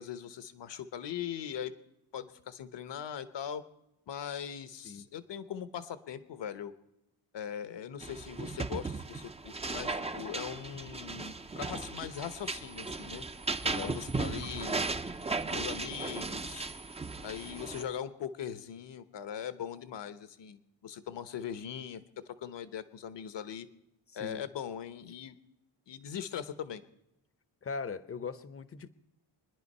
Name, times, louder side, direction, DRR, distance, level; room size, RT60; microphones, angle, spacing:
voice 1, 0.0-1.7 2.1-3.6 4.1-6.7 7.3-13.3 13.8-14.8 15.5-16.7 17.2-23.7 24.1-25.4 25.9-26.8, left 9 dB, 65° left, 12 dB, 1.0 m, -40 dB
sound 1, 8.0-17.8, right 3 dB, 15° right, 0.5 m, -36 dB
voice 2, 13.6-14.0 24.2-24.4 27.6-28.9, left 5 dB, 30° left, 14 dB, 0.7 m, -39 dB
25.0 x 10.5 x 5.4 m, 0.84 s
wide cardioid pair, 150°, 45 cm